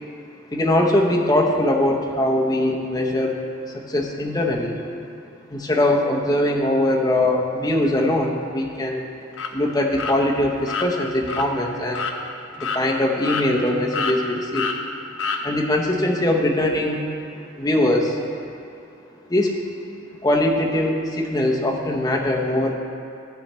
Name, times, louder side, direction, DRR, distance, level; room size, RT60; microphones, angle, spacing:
voice 1, 0.5-3.4 3.7-4.8 5.5-9.1 9.5-12.0 12.6-14.7 15.4-17.0 17.6-18.2 19.3-19.6 20.2-22.8, left 1 dB, 20° left, -1 dB, 0.9 m, -21 dB
sound 1, 9.3-9.5 10.0-10.2 10.7-10.9 11.3-11.5 11.9-12.2 12.6-12.8 13.2-13.7 13.9-14.2 14.5-14.8 15.2-15.4, left 5 dB, 70° left, 0.7 m, -26 dB
14.0 x 4.9 x 4.3 m, 2.6 s
head